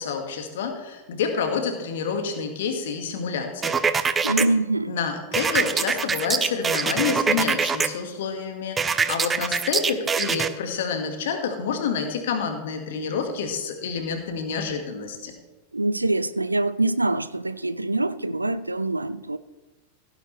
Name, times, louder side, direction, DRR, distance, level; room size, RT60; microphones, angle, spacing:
voice 1, 0.0-3.8 4.9-15.3, left 6 dB, 55° left, 1.8 m, -28 dB
sound 1, 3.6-4.5 5.3-7.9 8.8-10.5, right 5 dB, 15° right, 0.7 m, -23 dB
voice 2, 4.2-5.0 15.7-19.4, right 2 dB, 85° right, 0.4 m, -24 dB
16.0 x 9.6 x 3.3 m
figure-of-eight pair, 90°, 0 cm